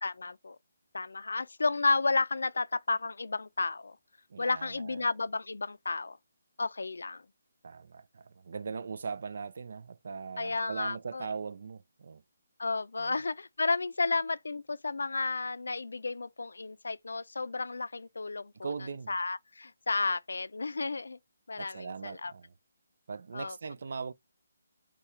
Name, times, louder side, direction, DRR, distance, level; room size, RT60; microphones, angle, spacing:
voice 1, 0.0-0.6 0.9-4.0 4.4-6.2 6.6-7.2 10.4-11.3 12.6-18.7 19.1-21.2 21.5-22.3 23.3-23.6, left 3 dB, 85° left, 0.4 m, -32 dB
voice 2, 4.3-5.1 7.6-12.2 13.0-13.2 18.5-19.2 21.6-22.5 23.1-24.1, right 5 dB, 55° right, 0.4 m, -40 dB
4.2 x 2.3 x 4.7 m
hypercardioid pair, 170°, 0 cm